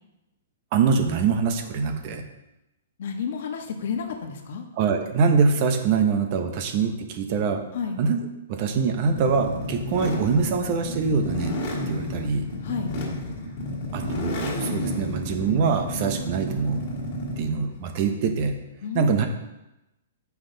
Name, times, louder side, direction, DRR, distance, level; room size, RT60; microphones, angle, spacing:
voice 1, 0.7-2.2 4.8-7.6 8.0-8.2 8.5-11.6 11.9-12.5 13.9-16.8 17.4-18.6 18.9-19.3, right 5 dB, 35° right, 6 dB, 0.9 m, -24 dB
voice 2, 3.0-4.6 7.7-8.0 12.6-12.9 18.8-19.3, left 6 dB, 55° left, 4 dB, 1.3 m, -31 dB
sound 1, 9.0-17.6, left 1 dB, 30° left, 2.1 m, -31 dB
9.6 x 5.8 x 3.9 m, 0.95 s
hypercardioid pair, 170°, 0 cm